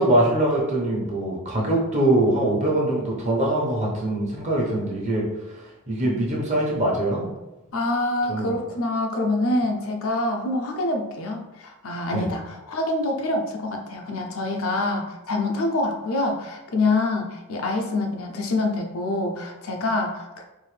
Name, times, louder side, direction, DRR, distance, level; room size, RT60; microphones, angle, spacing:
voice 1, 0.0-5.2 5.9-7.3 8.3-8.5 12.1-12.2, right 1 dB, 30° right, -3 dB, 1.0 m, -23 dB
voice 2, 7.7-20.4, left 2 dB, 65° left, 3 dB, 0.6 m, -26 dB
4.5 x 2.6 x 3.3 m, 1.0 s
head